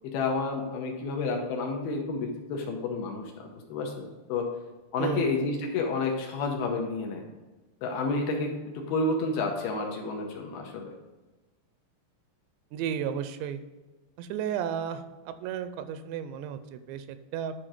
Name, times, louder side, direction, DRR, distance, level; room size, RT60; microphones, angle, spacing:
voice 1, 0.0-4.5 4.9-7.2 7.8-10.9, left 3 dB, 75° left, 2 dB, 2.6 m, -30 dB
voice 2, 5.0-5.3 12.7-13.6 14.2-17.5, right 8 dB, 85° right, 10 dB, 2.8 m, -33 dB
10.0 x 4.5 x 4.9 m, 1.2 s
omnidirectional pair, 5.0 m